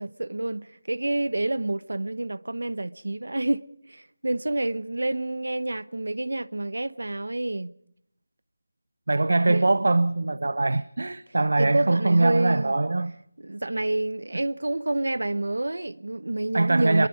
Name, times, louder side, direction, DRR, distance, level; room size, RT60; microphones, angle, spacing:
voice 1, 0.0-7.7 9.5-9.8 11.6-12.7 13.4-17.1, right 2 dB, 90° right, 1.0 m, -28 dB
voice 2, 9.1-13.1 14.3-14.4 16.5-17.1, right 2 dB, 55° right, 0.8 m, -22 dB
27.0 x 22.0 x 5.1 m
figure-of-eight pair, 180°, 0 cm